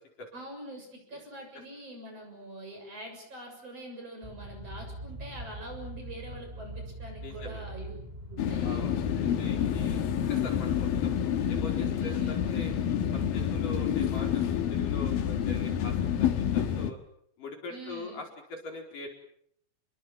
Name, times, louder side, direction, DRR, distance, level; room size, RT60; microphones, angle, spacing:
voice 1, 0.3-8.0 8.3-8.8 9.8-10.4 12.0-12.4 17.7-18.2, right 1 dB, 40° right, 3 dB, 8.1 m, -44 dB
sound 1, 4.2-14.1, right 1 dB, 10° right, 3.7 m, -42 dB
voice 2, 7.2-7.7 8.6-10.0 10.3-11.1 11.5-12.7 13.1-17.0 17.4-19.1, left 3 dB, 65° left, 2 dB, 6.1 m, -42 dB
sound 2, 8.4-16.9, left 9 dB, 80° left, 3.4 m, -28 dB
29.5 x 22.0 x 7.6 m, 0.69 s
omnidirectional pair, 4.2 m